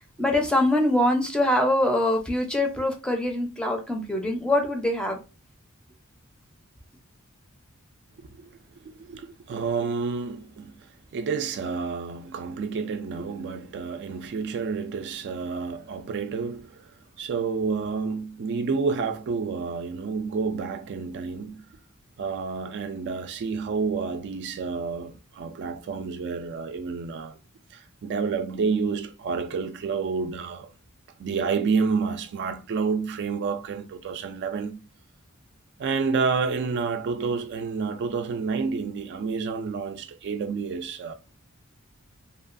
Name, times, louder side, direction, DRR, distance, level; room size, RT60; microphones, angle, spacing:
voice 1, 0.2-5.2, left 1 dB, 5° left, 0.5 m, -23 dB
voice 2, 8.8-10.9 11.1-21.7 22.2-27.4 27.7-30.7 31.2-34.8 35.8-41.1, right 5 dB, 55° right, 0.3 m, -29 dB
2.9 x 2.3 x 2.4 m
head